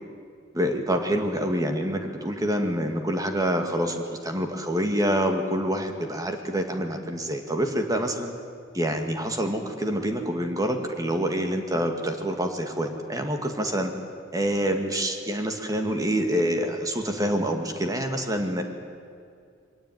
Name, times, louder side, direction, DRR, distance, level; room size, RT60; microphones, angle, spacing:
voice 1, 0.5-8.3 8.7-13.9 14.3-18.6, equal, 20° right, 4 dB, 2.0 m, -26 dB
23.0 x 17.5 x 9.4 m, 2.3 s
head